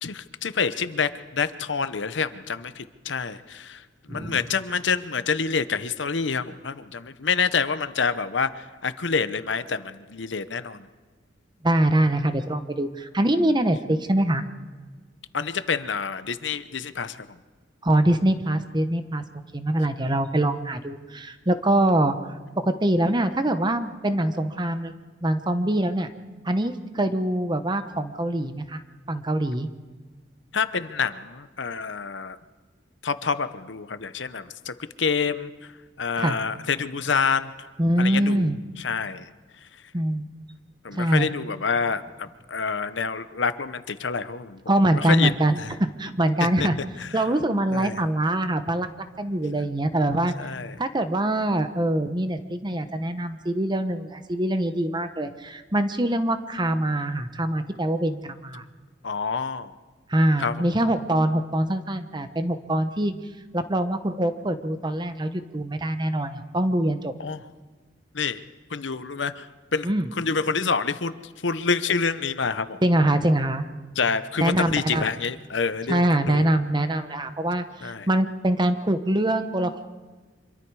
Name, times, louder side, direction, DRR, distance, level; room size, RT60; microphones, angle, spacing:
voice 1, 0.0-10.9 15.3-17.3 30.5-32.4 33.0-35.5 36.0-37.7 38.0-38.5 38.8-39.3 40.8-44.6 45.0-45.7 46.4-46.7 47.0-47.2 47.7-48.0 50.4-50.8 59.0-59.7 60.4-60.7 67.2-67.4 68.1-68.4 68.7-69.9 70.1-72.8 73.9-76.5 77.8-78.1, left 5 dB, 75° left, 12 dB, 0.9 m, -27 dB
voice 2, 4.1-4.4 11.6-14.4 17.8-19.2 19.5-22.1 22.6-24.9 25.2-26.1 26.4-28.8 29.1-29.7 36.2-36.4 37.8-38.6 39.9-40.3 40.9-41.3 44.7-46.8 47.1-48.9 49.2-50.3 50.8-58.6 60.1-63.1 63.5-67.1 69.8-70.1 72.8-73.6 74.4-75.0 75.9-79.9, right 1 dB, 25° right, 9 dB, 1.0 m, -24 dB
25.5 x 23.0 x 4.8 m, 1.4 s
head